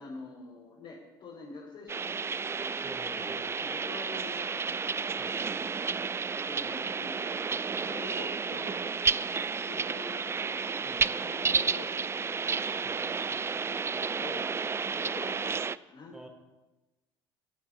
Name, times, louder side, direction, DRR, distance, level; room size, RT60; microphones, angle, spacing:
voice 1, 0.0-2.8 3.1-5.1 6.5-8.8 9.6-12.4 13.3-16.2, left 3 dB, 45° left, -7 dB, 5.0 m, -47 dB
sound 1, 1.9-15.8, right 5 dB, 20° right, 0.4 m, -31 dB
voice 2, 2.8-3.7 5.1-5.8 10.8-11.1 12.8-13.2 16.1-16.3, equal, 5° right, 1 dB, 5.0 m, -48 dB
25.0 x 8.8 x 4.4 m, 1.1 s
figure-of-eight pair, 60°, 13 cm